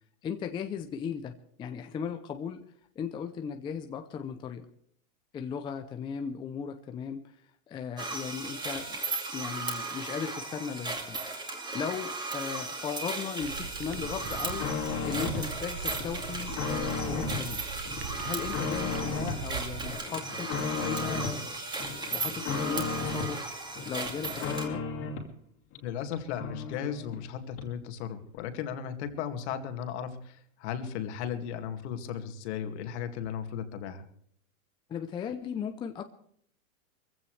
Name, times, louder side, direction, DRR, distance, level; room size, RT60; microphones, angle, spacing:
voice 1, 0.2-2.6 3.0-4.7 5.3-7.4 7.7-9.0 9.3-14.7 15.0-17.6 18.2-21.6 22.1-23.5 23.9-24.8 34.9-36.0, left 7 dB, 10° left, 7 dB, 0.5 m, -37 dB
sound 1, 8.0-24.7, right 3 dB, 10° right, 2.4 m, -36 dB
sound 2, 13.4-19.9, right 7 dB, 45° right, 0.9 m, -41 dB
sound 3, 13.9-15.5 15.9-17.5 17.9-19.5 19.8-21.4 21.8-23.4 23.8-25.3 25.7-25.8 26.1-26.2 26.4-27.3 27.6-27.7, left 5 dB, 30° left, 2.6 m, -35 dB
voice 2, 25.8-34.0, left 8 dB, 50° left, 7 dB, 2.3 m, -36 dB
23.0 x 15.5 x 3.3 m, 0.64 s
supercardioid pair, 145°, 42 cm